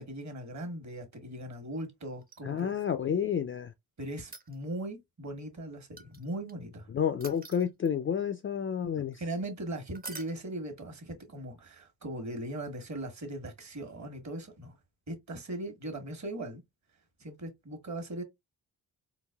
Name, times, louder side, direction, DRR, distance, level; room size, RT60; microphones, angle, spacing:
voice 1, 0.0-2.7 4.0-6.9 9.1-14.8 15.1-16.6 17.2-18.2, right 1 dB, 40° right, 1.3 m, -39 dB
sound 1, 2.2-2.9 4.2-4.9 6.0-6.5 7.2-8.1 9.9-10.4 12.6-12.7, right 3 dB, 20° right, 0.7 m, -46 dB
voice 2, 2.4-3.7 6.9-9.2, left 8 dB, 30° left, 0.4 m, -30 dB
3.9 x 2.3 x 2.2 m
hypercardioid pair, 45°, 45 cm